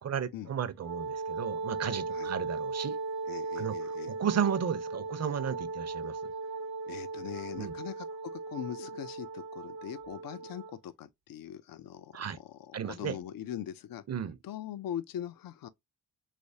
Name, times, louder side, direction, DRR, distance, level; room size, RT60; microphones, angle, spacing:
voice 1, 0.0-3.0 3.6-3.7 4.0-6.2 7.6-7.7 12.1-12.4 12.7-13.2 14.1-14.4, right 8 dB, 45° right, 0.6 m, -33 dB
Wind instrument woodwind instrument, 0.8-10.8, right 3 dB, 80° right, 0.8 m, -37 dB
voice 2, 3.3-4.1 6.4-6.5 6.9-14.0 14.4-15.7, left 11 dB, 65° left, 0.5 m, -41 dB
3.3 x 3.0 x 2.7 m
cardioid pair, 60°, 37 cm